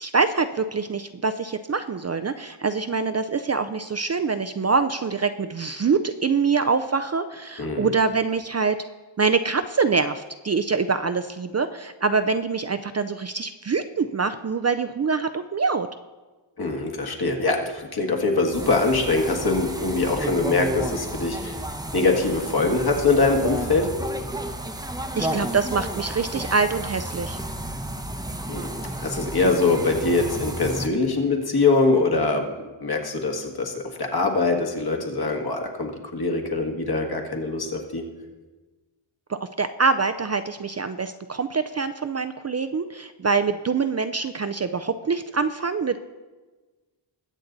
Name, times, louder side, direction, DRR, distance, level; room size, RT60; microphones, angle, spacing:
voice 1, 0.0-8.8 9.2-15.9 25.2-27.4 39.3-46.0, right 4 dB, 35° right, 10 dB, 0.4 m, -25 dB
voice 2, 7.6-7.9 16.6-21.6 21.9-23.9 28.5-28.7 29.0-32.5 32.8-38.0, left 3 dB, 55° left, 3 dB, 1.8 m, -23 dB
sound 1, 18.5-30.9, right 1 dB, 10° right, 0.7 m, -32 dB
21.5 x 8.2 x 3.9 m, 1.3 s
wide cardioid pair, 155°, 46 cm